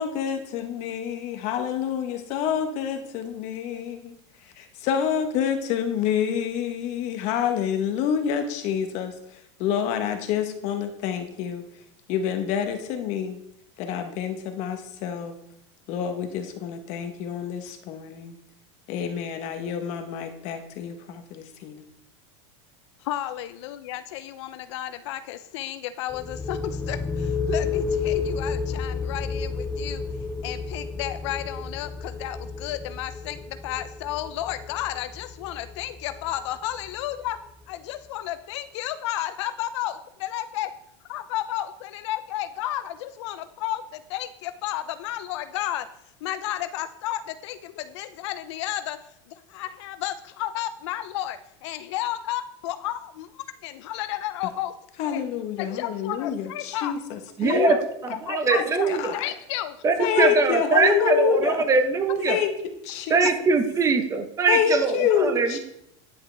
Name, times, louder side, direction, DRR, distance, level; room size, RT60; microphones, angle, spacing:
voice 1, 0.0-4.1 4.6-9.1 9.6-11.6 12.1-13.4 13.8-15.3 15.9-18.3 18.9-21.8 55.0-57.7 58.5-59.2 60.0-61.6 62.2-62.5 62.8-63.3 64.5-65.6, left 8 dB, 50° left, 7 dB, 1.1 m, -27 dB
voice 2, 23.0-30.0 30.4-37.4 37.7-40.7 41.0-45.9 46.2-54.7 55.0-55.2 55.6-57.0 57.6-57.8 58.3-59.8 60.0-60.3 60.7-61.1, left 13 dB, 70° left, 12 dB, 0.5 m, -32 dB
sound 1, 26.1-37.6, left 4 dB, 10° left, 0.4 m, -31 dB
voice 3, 57.4-57.8 58.2-59.1 59.8-62.4 63.1-65.6, right 4 dB, 20° right, 7 dB, 0.8 m, -22 dB
9.9 x 5.7 x 3.3 m, 0.76 s
supercardioid pair, 140°, 15 cm